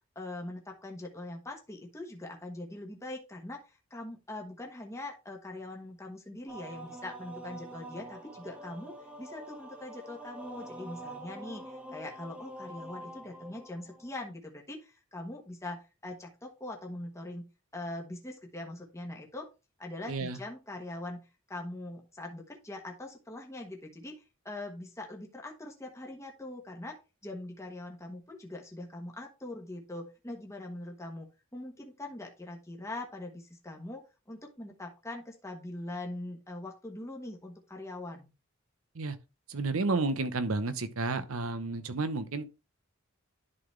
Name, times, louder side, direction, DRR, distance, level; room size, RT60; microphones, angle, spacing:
voice 1, 0.1-3.6 3.9-11.6 11.9-17.4 17.7-19.5 19.8-24.2 24.4-27.0 27.2-34.0 34.3-38.3, left 2 dB, 15° left, 1.3 m, -42 dB
sound 1, 6.5-14.1, right 1 dB, 5° right, 1.3 m, -46 dB
voice 2, 20.1-20.4 38.9-39.2 39.5-42.4, right 3 dB, 85° right, 0.9 m, -31 dB
11.0 x 4.0 x 3.2 m
head